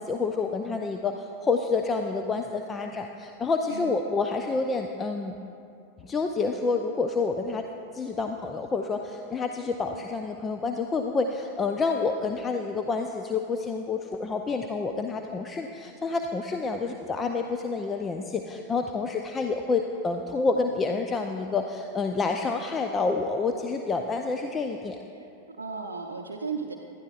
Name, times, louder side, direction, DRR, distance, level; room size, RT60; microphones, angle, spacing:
voice 1, 0.0-5.4 6.0-7.7 7.9-25.0, left 4 dB, 20° left, 5 dB, 0.5 m, -28 dB
voice 2, 25.1-26.8, right 5 dB, 75° right, 1 dB, 0.6 m, -35 dB
19.0 x 12.0 x 2.4 m, 2.7 s
figure-of-eight pair, 90°, 0 cm